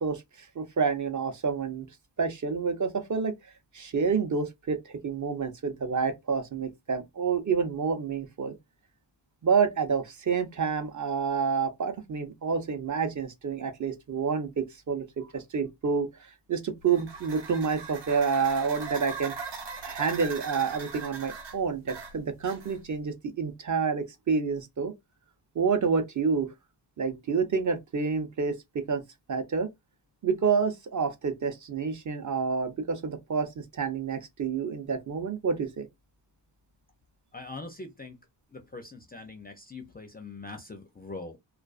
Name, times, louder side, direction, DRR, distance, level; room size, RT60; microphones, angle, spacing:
voice 1, 0.0-1.9 2.2-3.3 3.7-8.6 9.4-16.1 16.5-19.3 19.8-24.9 25.5-26.5 27.0-28.6 28.9-29.0 29.3-29.7 30.2-35.9, right 5 dB, 40° right, 0.6 m, -28 dB
sound 1, 16.8-23.0, right 5 dB, 65° right, 1.0 m, -40 dB
voice 2, 37.3-38.2 38.5-41.4, left 3 dB, 20° left, 0.4 m, -42 dB
2.4 x 2.3 x 2.3 m
cardioid pair, 90°, 45 cm